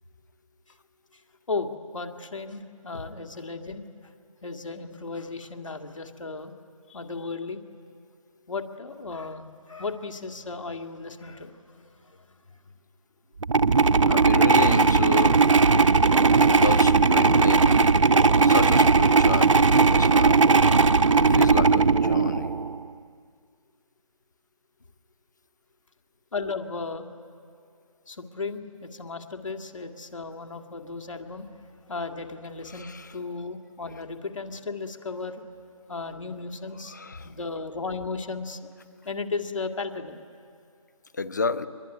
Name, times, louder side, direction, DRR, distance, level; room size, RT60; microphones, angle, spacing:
voice 1, 1.5-4.1 4.4-6.5 6.9-7.6 8.5-12.4 20.0-20.1 26.3-27.1 28.1-31.6 31.9-35.5 35.9-38.6 39.0-40.2, left 4 dB, 60° left, 6 dB, 2.2 m, -35 dB
sound 1, 13.4-22.8, right 4 dB, 60° right, 0.8 m, -18 dB
voice 2, 14.0-15.4 16.4-18.0 18.4-20.6 21.2-22.5 32.7-33.1 36.9-37.3 41.1-41.7, left 4 dB, 30° left, 13 dB, 0.9 m, -31 dB
25.0 x 22.5 x 9.5 m, 2.4 s
figure-of-eight pair, 170°, 18 cm